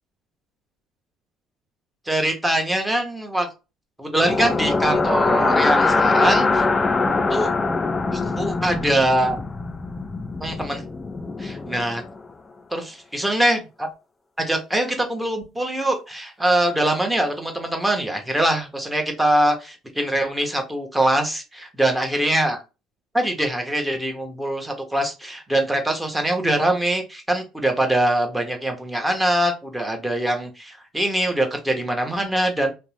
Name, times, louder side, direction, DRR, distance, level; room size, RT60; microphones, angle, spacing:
voice 1, 2.1-3.5 4.0-6.6 7.3-7.5 8.1-9.4 10.4-10.8 11.4-12.0 12.7-13.9 14.4-22.6 23.1-32.7, right 1 dB, 10° right, 3 dB, 0.8 m, -23 dB
sound 1, 4.2-12.2, left 3 dB, 25° left, 0.3 m, -22 dB
2.6 x 2.0 x 3.1 m, 0.28 s
supercardioid pair, 80°, 0 cm